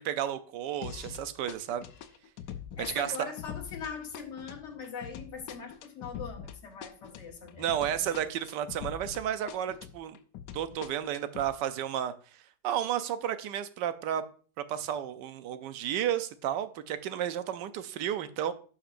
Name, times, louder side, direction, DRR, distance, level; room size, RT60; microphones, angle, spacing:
voice 1, 0.0-1.9 2.9-3.1 7.6-10.2 10.5-12.1 12.6-14.2 14.6-18.5, right 10 dB, 85° right, 1.3 m, -32 dB
sound 1, 0.8-1.2 1.5-9.2 9.5-11.5, left 8 dB, 90° left, 1.3 m, -43 dB
voice 2, 2.8-8.3, left 5 dB, 45° left, 1.6 m, -41 dB
11.0 x 5.8 x 2.5 m
omnidirectional pair, 1.8 m